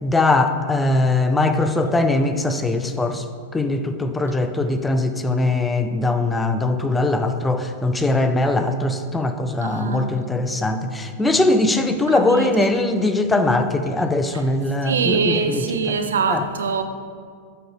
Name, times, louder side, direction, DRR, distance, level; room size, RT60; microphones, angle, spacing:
voice 1, 0.0-3.2 3.5-16.0 16.3-16.4, left 2 dB, 10° left, 0.5 m, -21 dB
voice 2, 9.6-10.2 12.1-12.7 14.8-16.8, right 5 dB, 85° right, 0.6 m, -23 dB
8.0 x 3.9 x 5.1 m
hypercardioid pair, 110°, 0 cm